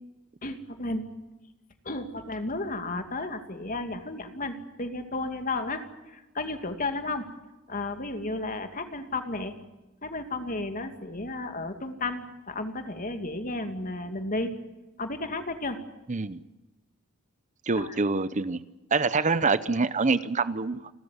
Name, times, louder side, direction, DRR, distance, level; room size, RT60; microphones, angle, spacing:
voice 1, 0.4-1.0 1.8-7.3 7.7-9.5 10.0-14.5 15.0-15.8 17.7-18.0, left 2 dB, 40° left, 7 dB, 2.5 m, -33 dB
voice 2, 16.1-16.4 17.7-18.6 18.9-20.9, right 4 dB, 35° right, 15 dB, 0.7 m, -25 dB
29.5 x 13.5 x 9.8 m, 1.1 s
head